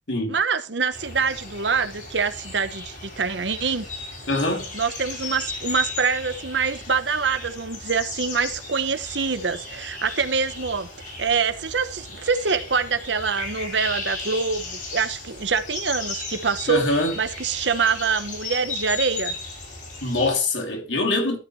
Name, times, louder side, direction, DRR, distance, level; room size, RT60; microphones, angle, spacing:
voice 1, 0.3-3.9 4.7-10.9 11.2-16.8 17.2-19.3, right 5 dB, 70° right, 1.0 m, -25 dB
sound 1, 0.9-20.3, left 3 dB, 45° left, 5.0 m, -36 dB
voice 2, 4.3-4.7 16.7-17.1 20.0-21.4, left 2 dB, 80° left, 3.0 m, -23 dB
13.0 x 8.3 x 3.2 m
head